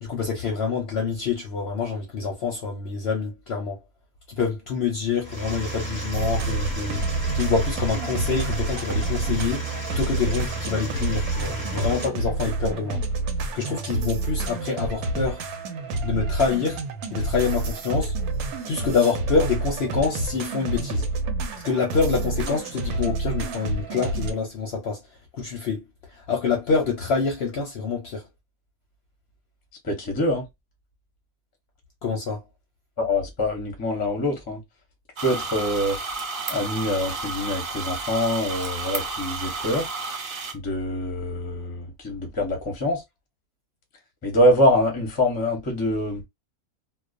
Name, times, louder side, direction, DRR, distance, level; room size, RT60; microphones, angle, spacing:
voice 1, 0.0-3.8 4.4-7.0 7.3-9.7 10.0-13.0 13.5-15.4 16.0-16.8 17.1-18.1 18.7-21.0 21.6-25.0 25.3-25.8 26.1-28.2 32.0-32.4, left 5 dB, 60° left, 0.7 m, -26 dB
sound 1, 5.2-12.1, right 2 dB, 10° right, 0.7 m, -33 dB
sound 2, 6.1-24.3, right 2 dB, 90° right, 1.1 m, -28 dB
voice 2, 29.8-30.5 33.0-34.6 35.2-36.0 36.5-39.9 40.5-43.0 44.2-46.2, left 1 dB, 25° left, 0.5 m, -24 dB
sound 3, 35.2-40.5, right 4 dB, 55° right, 0.7 m, -32 dB
2.3 x 2.2 x 2.4 m
omnidirectional pair, 1.5 m